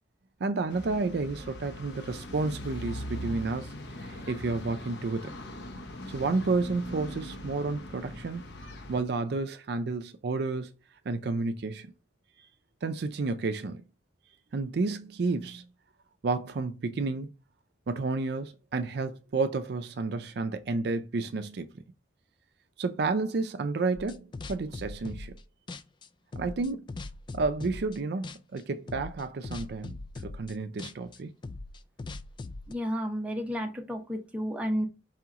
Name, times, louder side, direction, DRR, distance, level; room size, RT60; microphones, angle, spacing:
voice 1, 0.4-3.7 4.0-5.3 6.1-8.5 8.9-10.7 11.1-11.9 12.8-13.8 14.5-15.7 16.2-17.3 17.9-21.7 22.8-25.3 26.4-26.8 27.3-31.3, right 3 dB, 60° right, 0.4 m, -31 dB
sound 1, 0.7-9.0, equal, 70° left, 0.8 m, -41 dB
sound 2, 24.0-25.4 25.7-28.0 28.2-28.6 28.9-32.7, left 3 dB, 25° left, 0.3 m, -41 dB
voice 2, 32.7-34.9, equal, 10° right, 0.8 m, -31 dB
4.8 x 2.9 x 3.5 m
head